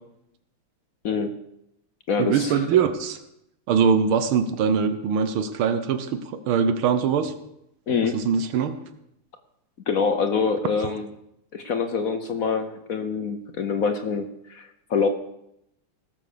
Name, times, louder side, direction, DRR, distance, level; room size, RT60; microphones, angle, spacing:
voice 1, 1.0-1.3 2.1-2.6 7.9-8.2 9.9-11.1 11.5-15.1, left 5 dB, 55° left, 8 dB, 1.0 m, -25 dB
voice 2, 2.2-3.2 3.7-7.3 8.1-8.8 10.8-10.9, right 6 dB, 80° right, 9 dB, 1.8 m, -22 dB
18.0 x 7.5 x 6.7 m, 0.80 s
omnidirectional pair, 2.3 m